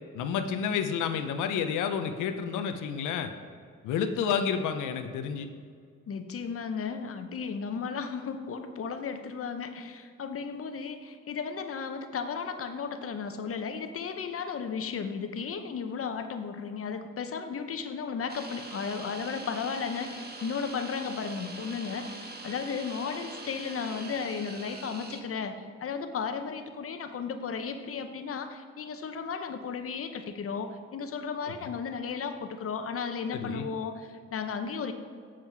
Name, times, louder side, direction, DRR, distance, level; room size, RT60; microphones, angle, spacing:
voice 1, 0.1-3.3 3.8-5.5 33.3-33.7, left 7 dB, 90° left, 7 dB, 0.7 m, -30 dB
voice 2, 6.1-34.9, left 5 dB, 50° left, 7 dB, 0.9 m, -34 dB
sound 1, 18.3-25.2, right 2 dB, 30° right, 1.1 m, -43 dB
7.6 x 7.5 x 4.6 m, 2.1 s
cardioid pair, 90°, 30 cm